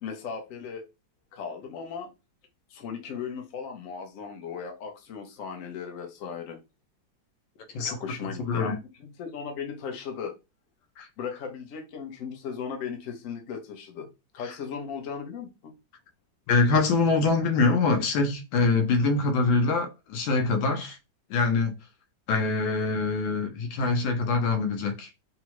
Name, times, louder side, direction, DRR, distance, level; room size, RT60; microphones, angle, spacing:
voice 1, 0.0-0.8 1.3-2.1 2.7-6.6 7.8-10.3 11.2-14.1 14.3-15.7, left 6 dB, 60° left, 0.9 m, -37 dB
voice 2, 8.5-8.8 11.0-11.1 14.4-14.5 16.5-21.0 21.3-21.7 22.3-25.1, left 3 dB, 85° left, 1.4 m, -24 dB
3.6 x 2.1 x 3.0 m
omnidirectional pair, 2.0 m